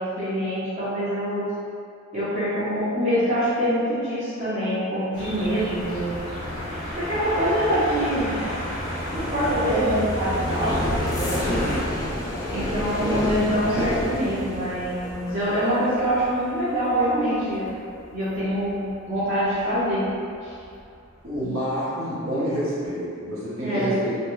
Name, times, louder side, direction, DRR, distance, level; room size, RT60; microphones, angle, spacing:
voice 1, 0.0-1.4 2.1-6.1 7.0-8.4 9.1-11.7 12.5-17.7 18.1-20.0 20.4-20.5 23.6-24.0, equal, 35° right, -13 dB, 0.6 m, -25 dB
sound 1, 5.1-11.8, left 1 dB, 40° left, 0.7 m, -31 dB
sound 2, 5.6-20.2 20.5-20.9 21.2-21.6, left 1 dB, 20° left, 0.4 m, -32 dB
voice 2, 9.6-10.0 12.9-13.2 21.2-24.2, equal, 80° right, -9 dB, 0.8 m, -28 dB
2.4 x 2.2 x 3.0 m, 2.4 s
head